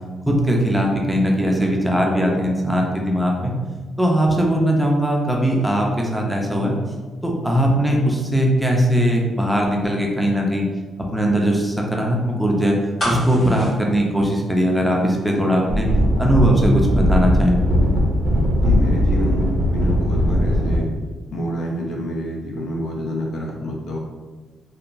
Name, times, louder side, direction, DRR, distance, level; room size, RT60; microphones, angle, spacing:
voice 1, 0.2-3.5 4.0-6.7 7.2-10.7 11.1-12.7 13.0-15.9 16.2-17.6, equal, ahead, -1 dB, 0.4 m, -19 dB
sound 1, 13.0-15.0 15.3-15.4, equal, 35° left, 1.1 m, -28 dB
sound 2, 15.7-20.8, equal, 85° right, 0.5 m, -19 dB
voice 2, 18.6-20.9 21.3-24.0, equal, 70° left, -1 dB, 0.5 m, -27 dB
2.8 x 2.2 x 2.5 m, 1.3 s
cardioid pair, 110°, 0 cm